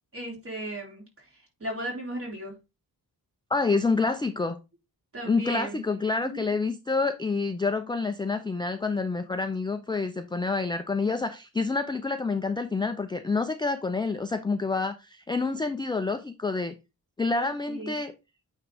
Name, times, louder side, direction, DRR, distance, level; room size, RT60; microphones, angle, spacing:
voice 1, 0.1-2.5 5.1-5.8 6.2-6.4 17.4-18.0, right 1 dB, 35° right, 3.7 m, -36 dB
voice 2, 3.5-4.6 5.3-16.7 17.2-18.1, left 4 dB, 10° left, 0.4 m, -28 dB
9.0 x 3.7 x 3.4 m
wide cardioid pair, 145°, 39 cm